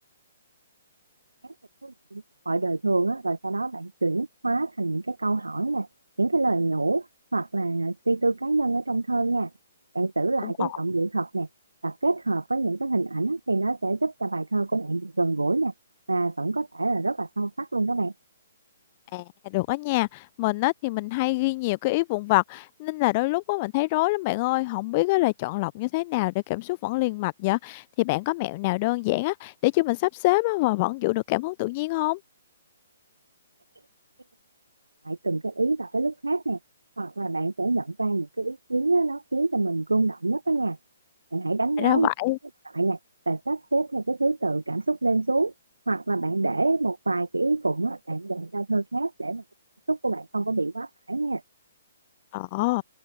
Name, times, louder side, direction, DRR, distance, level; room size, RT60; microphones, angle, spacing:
voice 1, 1.8-5.9 6.2-7.1 7.3-9.5 9.9-11.5 11.8-15.7 16.1-18.1 35.1-36.6 37.0-40.8 41.3-42.1 42.7-43.0 43.3-45.5 45.9-49.4 49.9-51.4, right 2 dB, 75° right, 1.8 m, -26 dB
voice 2, 10.4-10.8 19.1-32.2 41.8-42.4 52.3-52.8, left 22 dB, 30° left, 0.7 m, -25 dB
open air
figure-of-eight pair, 125°, 0 cm